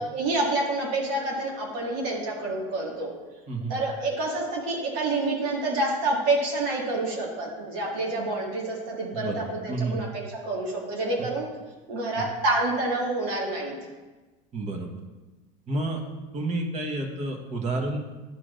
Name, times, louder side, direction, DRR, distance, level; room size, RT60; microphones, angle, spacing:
voice 1, 0.0-3.1 3.7-11.5 11.9-13.7, right 2 dB, 65° right, -2 dB, 2.0 m, -28 dB
voice 2, 3.5-3.8 9.1-10.1 11.2-11.3 12.1-12.3 14.5-14.9 15.7-16.0 16.3-18.0, right 2 dB, 40° right, 2 dB, 1.3 m, -30 dB
10.5 x 4.5 x 2.6 m, 1.2 s
supercardioid pair, 100°, 19 cm